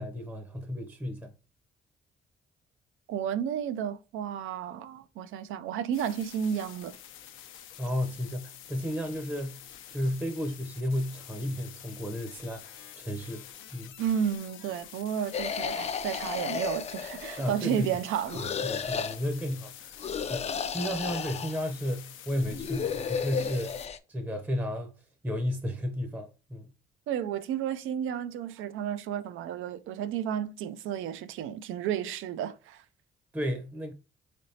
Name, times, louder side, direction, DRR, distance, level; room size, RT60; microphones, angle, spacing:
voice 1, 0.0-1.3 7.8-9.6 9.9-13.5 13.7-13.9 17.4-17.9 18.4-20.0 20.3-20.4 20.7-23.8 24.1-24.9 25.2-26.7 33.3-33.9, equal, 10° right, 0.6 m, -33 dB
voice 2, 3.1-7.0 14.0-18.5 27.1-32.8, right 9 dB, 85° right, 0.4 m, -32 dB
sound 1, 5.9-23.9, left 10 dB, 85° left, 0.6 m, -48 dB
sound 2, 15.3-17.6 18.3-19.2 20.0-21.6 22.4-24.0, left 6 dB, 35° left, 0.4 m, -33 dB
3.9 x 3.4 x 2.7 m
cardioid pair, 90°, 20 cm